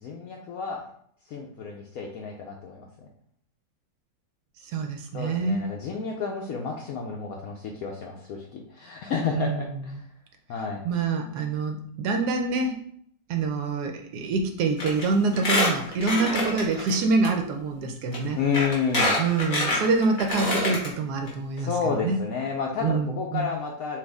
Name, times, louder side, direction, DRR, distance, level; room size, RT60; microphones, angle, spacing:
voice 1, 0.0-0.9 1.3-2.8 5.1-10.0 10.5-10.8 18.3-19.1 21.6-24.0, left 5 dB, 85° left, 0 dB, 0.7 m, -30 dB
voice 2, 4.7-5.7 9.3-9.6 10.8-12.7 13.3-18.4 19.2-21.7 22.0-22.2 22.8-23.5, right 4 dB, 75° right, 5 dB, 0.9 m, -26 dB
Squeak, 14.8-15.0 15.3-16.9 17.2-17.3 18.1-18.2 18.5-20.9 21.3-21.4 21.6-21.7, left 2 dB, 45° left, 1.8 m, -26 dB
5.9 x 2.5 x 3.5 m, 0.66 s
omnidirectional pair, 2.1 m